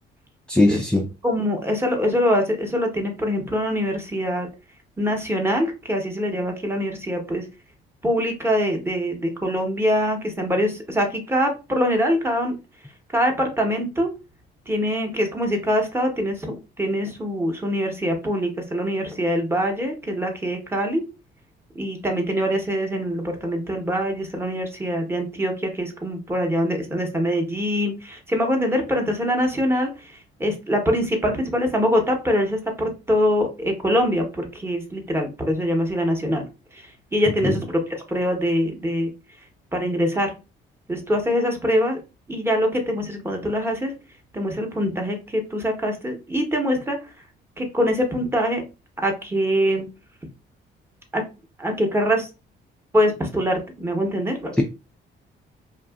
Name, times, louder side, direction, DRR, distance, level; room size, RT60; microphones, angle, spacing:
voice 1, 0.5-1.1 37.4-37.6 54.6-54.7, left 2 dB, 5° left, 0.3 m, -19 dB
voice 2, 1.2-4.5 5.0-7.5 8.0-12.5 13.1-14.1 14.7-21.0 21.7-36.4 36.7-37.8 38.1-39.1 39.7-40.3 40.9-42.0 42.3-43.9 44.3-47.0 47.6-48.6 49.0-49.9 51.1-51.2 51.6-52.3 52.9-54.6, equal, 10° right, 0.8 m, -23 dB
2.7 x 2.3 x 2.3 m
cardioid pair, 90°, 20 cm